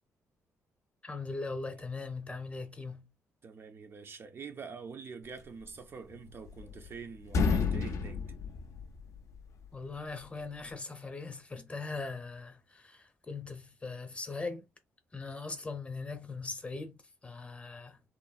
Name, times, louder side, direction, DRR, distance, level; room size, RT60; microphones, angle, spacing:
voice 1, 1.0-3.1 9.7-14.6 15.1-16.9 17.2-18.0, left 3 dB, 20° left, 0.6 m, -40 dB
voice 2, 3.4-8.2, right 5 dB, 45° right, 0.4 m, -46 dB
sound 1, 6.1-6.9 7.2-9.4, left 5 dB, 65° left, 0.4 m, -31 dB
3.0 x 2.0 x 2.4 m
cardioid pair, 100°, 6 cm